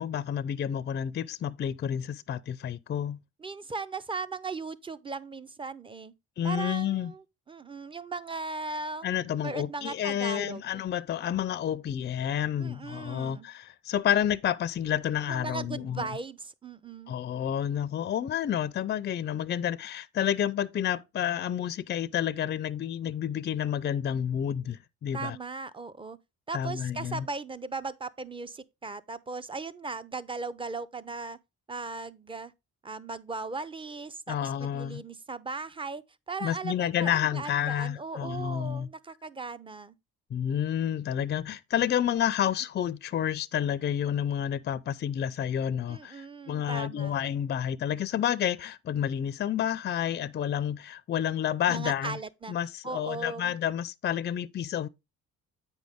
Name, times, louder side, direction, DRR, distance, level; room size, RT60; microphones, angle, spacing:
voice 1, 0.0-3.2 6.4-7.1 9.0-16.1 17.1-25.4 26.5-27.3 34.3-35.0 36.4-38.9 40.3-52.2 52.5-54.9, left 9 dB, 35° left, 0.4 m, -30 dB
voice 2, 3.4-6.1 6.4-9.0 9.4-10.6 12.6-13.5 15.3-17.1 25.1-26.2 26.5-31.4 31.7-32.5 32.8-39.9 45.9-47.1 51.7-52.5 52.8-53.5, right 4 dB, 15° right, 0.5 m, -38 dB
8.2 x 5.2 x 3.5 m
cardioid pair, 90°, 30 cm